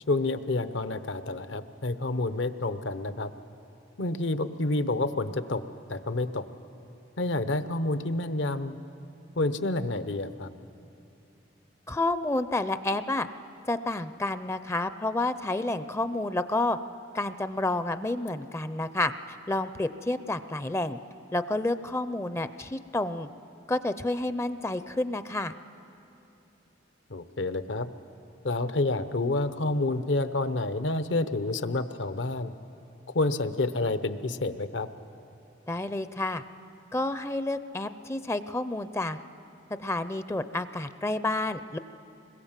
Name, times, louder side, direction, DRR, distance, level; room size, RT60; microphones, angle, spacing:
voice 1, 0.1-3.3 4.0-5.6 5.9-6.4 7.2-8.7 9.4-10.5 27.1-27.9 28.4-32.5 33.1-34.9, left 2 dB, 70° left, 11 dB, 0.9 m, -29 dB
voice 2, 11.9-13.3 13.7-16.8 17.1-21.0 21.3-23.3 23.7-25.5 35.7-36.4 36.9-39.2 39.8-41.8, left 2 dB, 15° left, 12 dB, 0.5 m, -30 dB
26.0 x 22.0 x 7.4 m, 2.7 s
head